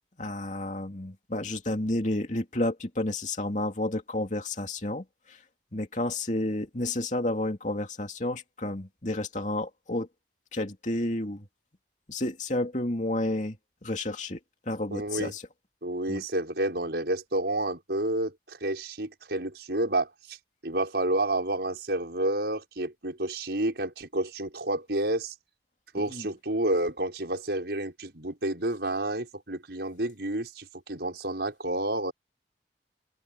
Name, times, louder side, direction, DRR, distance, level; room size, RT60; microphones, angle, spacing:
voice 1, 0.2-5.4 5.7-10.1 10.5-11.5 12.1-13.6 13.8-14.4 14.7-15.4 16.1-16.2 25.9-26.3, left 1 dB, 45° left, 2.7 m, -31 dB
voice 2, 14.9-15.3 15.8-20.4 20.6-25.3 25.9-32.1, right 1 dB, 70° right, 5.3 m, -30 dB
open air
head